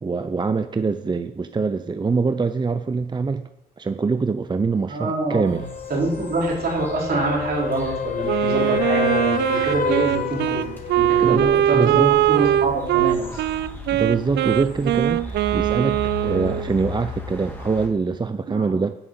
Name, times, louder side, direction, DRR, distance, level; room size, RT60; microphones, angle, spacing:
voice 1, 0.0-3.4 3.8-5.6 11.2-12.2 13.9-19.0, right 4 dB, 25° right, 10 dB, 0.5 m, -24 dB
voice 2, 4.9-5.6 5.9-10.7 11.0-12.0 12.3-13.4 18.5-18.6, right 2 dB, 60° right, -3 dB, 4.6 m, -25 dB
sound 1, 5.5-17.9, left 1 dB, 10° left, 2.5 m, -37 dB
sound 2, 5.6-11.2 15.3-15.4, left 8 dB, 50° left, 0.7 m, -29 dB
Wind instrument woodwind instrument, 8.2-16.7, right 12 dB, 80° right, 0.4 m, -21 dB
9.9 x 5.4 x 7.8 m, 0.86 s
supercardioid pair, 60°, 17 cm